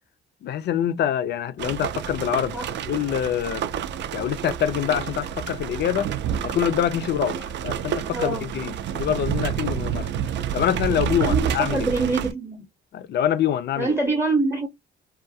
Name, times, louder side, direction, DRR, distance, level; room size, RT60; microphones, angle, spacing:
voice 1, 0.4-2.6 2.9-3.6 4.1-6.1 6.4-10.1 10.5-11.9 12.9-13.9, left 10 dB, 60° left, 0.5 m, -25 dB
sound 1, 1.6-12.3, right 8 dB, 65° right, 0.4 m, -29 dB
voice 2, 8.1-8.5 10.9-12.7 13.8-14.7, right 3 dB, 10° right, 0.7 m, -25 dB
2.3 x 2.2 x 2.7 m
cardioid pair, 90°, 20 cm